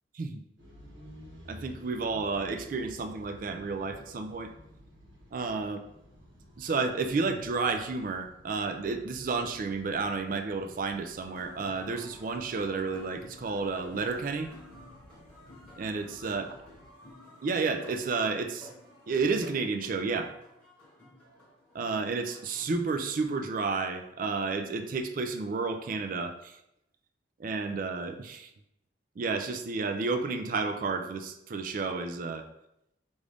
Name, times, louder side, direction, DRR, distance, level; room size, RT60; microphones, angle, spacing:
sound 1, 0.6-16.9, equal, 85° right, 1.2 m, -53 dB
voice 1, 1.5-4.5 5.3-5.8 6.6-14.5 15.8-16.5 17.4-18.7 19.1-20.3 21.7-26.6 27.4-28.5 29.2-32.4, right 4 dB, 45° right, 7 dB, 0.3 m, -31 dB
sound 2, 11.2-22.7, left 1 dB, 5° left, 1.0 m, -53 dB
4.9 x 2.6 x 3.3 m, 0.82 s
head